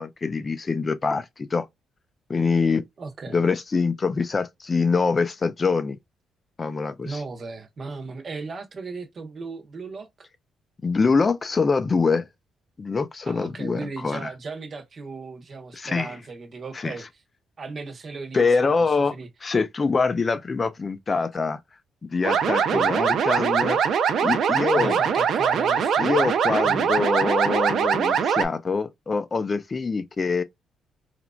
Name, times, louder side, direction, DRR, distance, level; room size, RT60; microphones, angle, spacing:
voice 1, 0.0-1.7 2.3-2.8 3.3-6.0 6.6-7.2 10.8-12.3 12.8-14.3 15.7-16.1 16.7-16.9 18.3-19.2 19.4-21.6 22.0-23.8 24.2-25.0 26.0-30.4, left 4 dB, 30° left, 0.4 m, -24 dB
voice 2, 3.0-3.4 7.0-10.3 13.3-17.1 17.6-19.3 22.7-22.9 24.7-26.3 26.6-26.8, right 4 dB, 45° right, 0.9 m, -36 dB
sound 1, 22.2-28.5, right 7 dB, 65° right, 0.5 m, -22 dB
3.0 x 2.5 x 2.2 m
cardioid pair, 90°, 0 cm